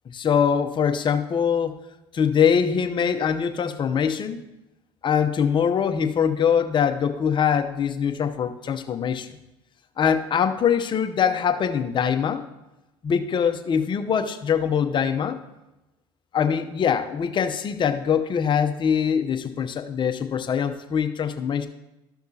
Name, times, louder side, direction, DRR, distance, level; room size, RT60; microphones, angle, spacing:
voice 1, 0.1-1.8 2.1-4.4 5.0-9.3 10.0-12.4 13.0-15.4 16.3-21.7, left 7 dB, 35° left, 7 dB, 0.8 m, -23 dB
13.0 x 5.9 x 2.9 m, 0.98 s
supercardioid pair, 85°, 13 cm